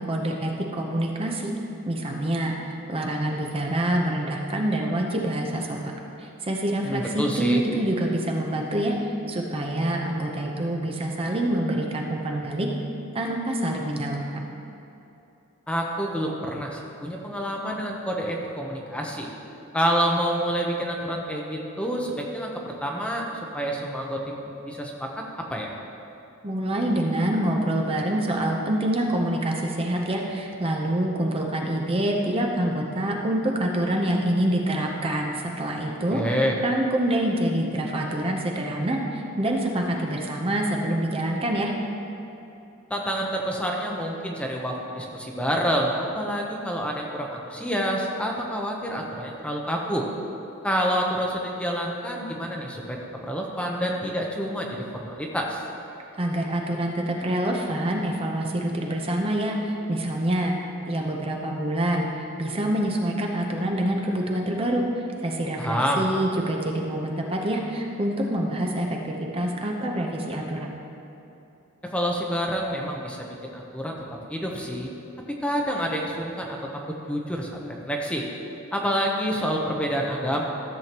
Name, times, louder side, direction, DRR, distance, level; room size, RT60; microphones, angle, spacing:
voice 1, 0.0-1.5 1.9-5.8 6.2-9.0 9.3-12.7 13.1-14.4 26.4-36.2 36.6-41.7 56.2-60.5 60.9-62.1 62.4-64.8 65.2-70.7, right 1 dB, 25° right, 0 dB, 0.7 m, -26 dB
voice 2, 6.8-7.6 15.7-19.3 19.7-23.3 23.5-25.7 36.1-36.6 42.9-50.0 50.6-53.0 53.2-55.6 65.6-66.1 71.8-74.0 74.3-74.9 75.3-76.7 77.1-78.3 78.7-80.4, equal, 5° left, -1 dB, 0.8 m, -28 dB
13.5 x 7.6 x 2.9 m, 2.8 s
head